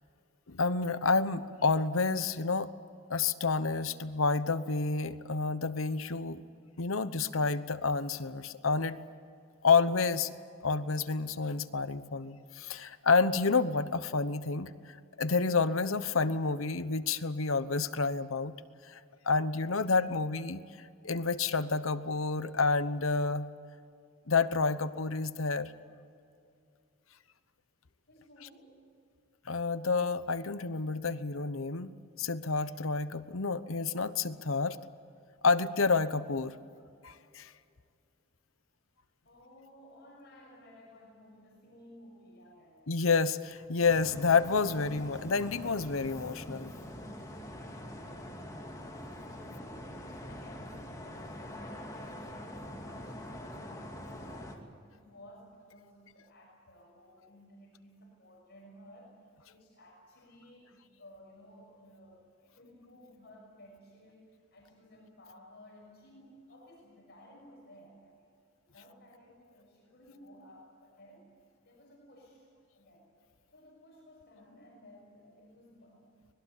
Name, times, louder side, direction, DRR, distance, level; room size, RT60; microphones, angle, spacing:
voice 1, 0.5-2.7 3.1-6.4 6.8-9.0 9.6-10.3 10.6-18.5 18.9-19.0 19.2-20.6 21.0-23.5 24.3-25.7 28.4-28.5 29.5-31.9 32.2-34.8 35.4-36.5 37.0-37.5 42.9-46.7, left 4 dB, 75° left, 13 dB, 1.0 m, -29 dB
voice 2, 28.1-28.9 39.2-42.9 47.7-59.2 59.4-68.3 68.6-71.3 71.6-73.1 73.5-76.1, equal, 55° left, -2 dB, 6.3 m, -56 dB
sound 1, 43.8-54.6, left 1 dB, 15° left, 2.4 m, -44 dB
25.0 x 20.0 x 8.5 m, 2.4 s
head